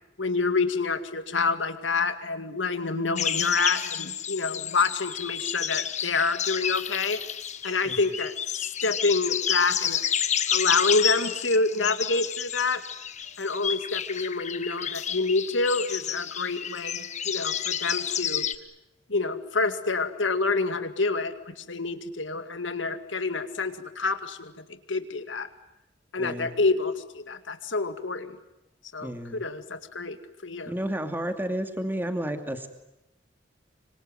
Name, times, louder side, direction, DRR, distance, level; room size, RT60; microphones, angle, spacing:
voice 1, 0.2-7.2 7.6-8.3 8.8-10.0 10.5-12.8 13.4-18.5 19.1-24.5 24.9-25.5 26.1-28.4 28.9-30.2 30.4-30.7, left 3 dB, 80° left, 9 dB, 2.2 m, -27 dB
sound 1, 3.2-18.5, left 9 dB, 40° left, 1.2 m, -30 dB
voice 2, 26.2-26.5 29.0-29.4 30.6-32.7, right 1 dB, 10° right, 7 dB, 2.5 m, -31 dB
25.5 x 25.5 x 9.2 m, 0.90 s
head